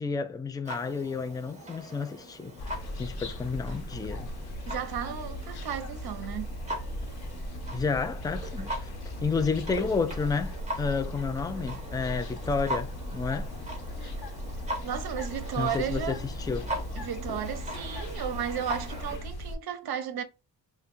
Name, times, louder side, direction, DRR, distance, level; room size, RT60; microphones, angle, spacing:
voice 1, 0.0-4.3 7.7-8.7 9.2-13.5 15.6-16.7, left 5 dB, 10° left, 0.4 m, -31 dB
Clock, 0.6-19.2, equal, 15° right, 1.4 m, -41 dB
sound 1, 2.6-19.6, equal, 60° left, 1.0 m, -38 dB
voice 2, 4.7-6.6 14.0-14.3 14.8-16.2 17.0-20.2, right 9 dB, 60° right, 0.7 m, -34 dB
5.5 x 2.2 x 2.6 m
cardioid pair, 100°, 42 cm